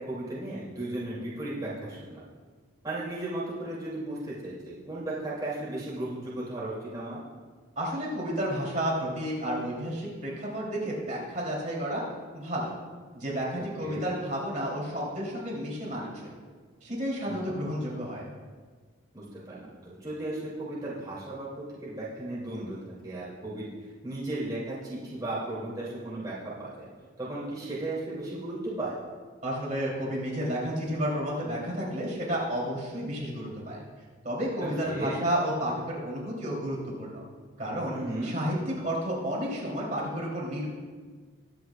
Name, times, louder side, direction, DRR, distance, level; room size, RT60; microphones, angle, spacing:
voice 1, 0.1-2.2 2.8-7.2 13.8-14.1 17.3-17.6 19.1-22.8 23.0-23.7 24.0-26.3 26.6-26.7 27.2-28.9 34.6-35.2 37.9-38.3, right 1 dB, 20° right, -9 dB, 2.7 m, -35 dB
voice 2, 7.8-12.0 12.3-12.7 13.1-16.1 16.8-18.3 29.4-33.8 34.2-37.2 37.6-40.7, equal, 40° right, -5 dB, 3.1 m, -31 dB
22.5 x 8.2 x 2.4 m, 1.5 s
head